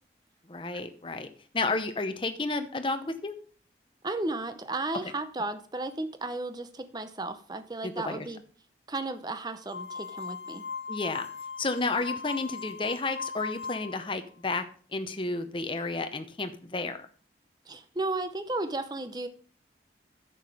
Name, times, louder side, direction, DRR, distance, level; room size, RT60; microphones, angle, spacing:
voice 1, 0.5-1.3 1.5-3.3 7.8-8.3 10.9-11.3 11.6-14.6 14.9-17.1, left 3 dB, 30° left, 0.8 m, -31 dB
voice 2, 4.0-8.4 8.9-10.6 17.7-19.3, right 2 dB, 20° right, 0.7 m, -34 dB
sound 1, 9.7-14.1, left 5 dB, 75° left, 0.8 m, -38 dB
9.8 x 6.9 x 4.9 m
head